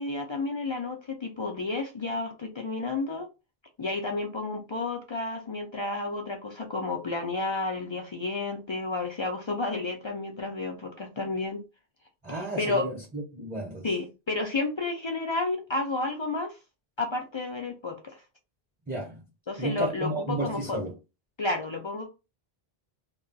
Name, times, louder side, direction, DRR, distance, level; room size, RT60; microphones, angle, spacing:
voice 1, 0.0-3.3 3.8-11.6 12.3-12.9 13.8-16.6 17.0-18.2 19.5-20.8 21.4-22.1, left 3 dB, 50° left, 0.3 m, -31 dB
voice 2, 12.2-13.9 18.9-19.2 19.6-20.9, right 2 dB, 10° right, 0.7 m, -33 dB
2.2 x 2.1 x 3.8 m
omnidirectional pair, 1.1 m